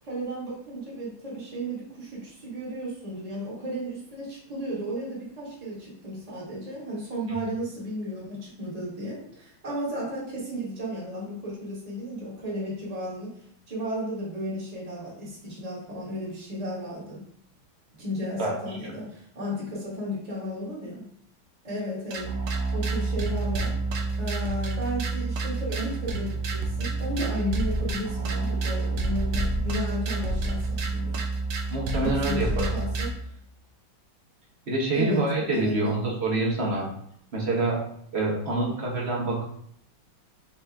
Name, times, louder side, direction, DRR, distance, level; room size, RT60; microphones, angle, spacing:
voice 1, 0.0-17.2 18.0-21.1 21.6-22.3 22.7-23.7 24.2-31.2 32.0-33.3 34.9-35.2 35.5-35.9 38.5-38.9, equal, 20° right, -6 dB, 1.5 m, -34 dB
sound 1, 22.1-33.1, right 2 dB, 75° right, 1.4 m, -28 dB
voice 2, 31.7-32.7 34.7-36.8 37.3-37.8 38.1-39.5, right 2 dB, 40° right, -3 dB, 1.0 m, -26 dB
5.7 x 2.7 x 3.4 m, 0.67 s
omnidirectional pair, 2.2 m